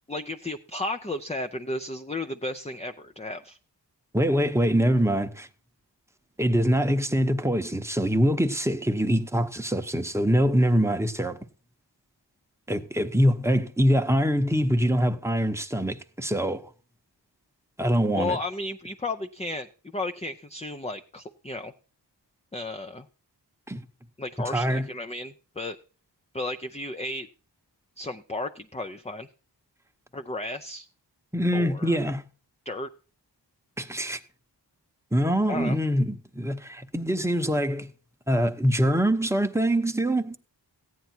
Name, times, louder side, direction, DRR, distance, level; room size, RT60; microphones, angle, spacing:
voice 1, 0.1-3.6 18.1-21.7 22.5-23.1 24.2-25.8 26.3-27.3 28.0-29.3 30.1-30.9 31.5-32.0 32.7-32.9 35.5-35.8, left 2 dB, 15° left, 0.5 m, -33 dB
voice 2, 4.1-5.5 6.4-11.4 12.7-16.6 17.8-18.4 23.7-23.8 24.5-24.9 31.3-32.2 33.8-34.2 35.1-37.9 38.3-40.4, equal, 5° right, 0.9 m, -24 dB
14.5 x 9.3 x 4.4 m
wide cardioid pair, 60°, 43 cm